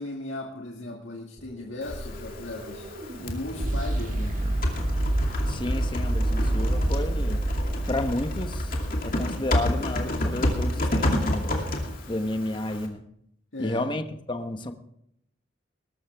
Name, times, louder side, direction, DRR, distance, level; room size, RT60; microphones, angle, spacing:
voice 1, 0.0-4.4 13.5-13.8, left 2 dB, 85° left, 1.9 m, -37 dB
sound 1, 1.4-9.5, right 1 dB, 40° right, 1.8 m, -28 dB
Typing, 1.8-12.9, left 1 dB, 50° left, 2.6 m, -30 dB
voice 2, 5.5-7.5 7.9-11.7 12.1-13.1 13.6-14.7, left 1 dB, 25° left, 1.0 m, -32 dB
20.0 x 13.0 x 3.5 m
head